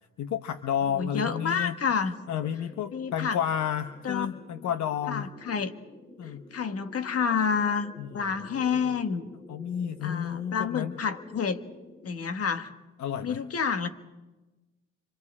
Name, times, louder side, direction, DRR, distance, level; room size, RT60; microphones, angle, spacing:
voice 1, 0.2-1.7 2.3-5.3 6.2-6.4 8.0-8.2 8.8-8.9 9.5-11.0 13.0-13.4, left 9 dB, 65° left, 9 dB, 1.1 m, -31 dB
voice 2, 0.9-2.2 2.9-3.4 4.0-4.3 5.1-5.7 6.5-9.3 10.0-11.6 12.0-12.7 13.2-13.9, left 6 dB, 50° left, 9 dB, 1.7 m, -29 dB
sound 1, 2.1-12.1, left 1 dB, 20° left, 6.3 m, -50 dB
29.5 x 25.5 x 4.9 m, 1.1 s
cardioid pair, 90°, 30 cm